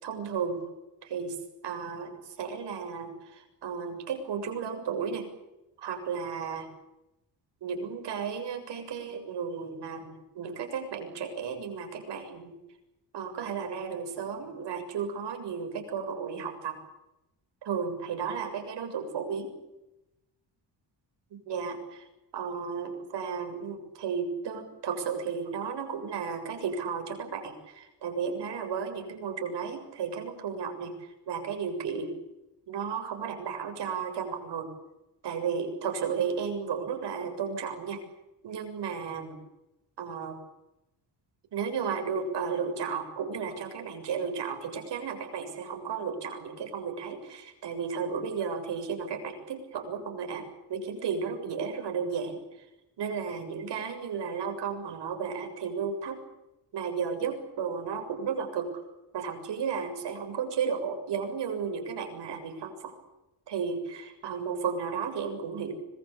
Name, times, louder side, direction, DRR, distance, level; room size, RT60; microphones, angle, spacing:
voice 1, 0.0-0.6 1.0-5.3 5.8-6.7 7.6-12.6 13.1-16.8 17.6-19.5 21.3-22.1 22.3-32.2 32.7-34.7 35.2-38.0 38.4-39.4 40.0-40.4 41.5-50.4 50.7-52.4 53.0-56.2 56.7-58.7 59.1-62.9 63.5-65.7, right 6 dB, 75° right, 5 dB, 7.1 m, -33 dB
26.0 x 20.5 x 8.7 m, 0.94 s
wide cardioid pair, 175°, 42 cm